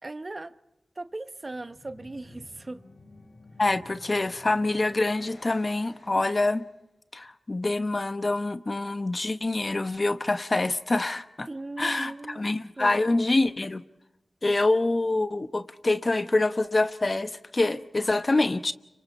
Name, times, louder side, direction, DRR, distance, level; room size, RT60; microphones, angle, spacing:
voice 1, 0.0-0.6 1.0-2.8 11.5-12.5 12.8-13.0, right 2 dB, 40° right, 0.9 m, -38 dB
sound 1, 1.3-6.8, left 2 dB, 75° left, 6.2 m, -52 dB
voice 2, 3.6-6.6 7.1-11.5 11.8-13.8 14.4-18.7, left 2 dB, 45° left, 1.1 m, -26 dB
29.5 x 25.5 x 4.3 m
cardioid pair, 50°, 0 cm